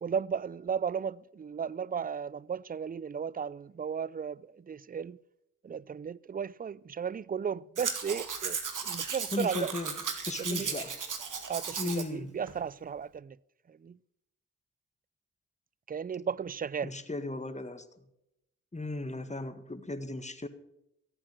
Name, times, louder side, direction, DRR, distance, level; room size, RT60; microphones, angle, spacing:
voice 1, 0.0-5.2 5.6-8.6 8.8-9.7 10.4-10.7 11.5-13.4 13.7-14.0 15.9-16.9, right 7 dB, 25° right, 0.4 m, -35 dB
Domestic sounds home sounds, 7.8-12.1 12.5-12.6, right 5 dB, 60° right, 2.0 m, -36 dB
voice 2, 9.3-9.9 10.2-11.0 11.8-12.3 16.8-17.9 18.7-20.5, left 2 dB, 20° left, 1.7 m, -36 dB
14.5 x 8.9 x 6.7 m
supercardioid pair, 40°, 35 cm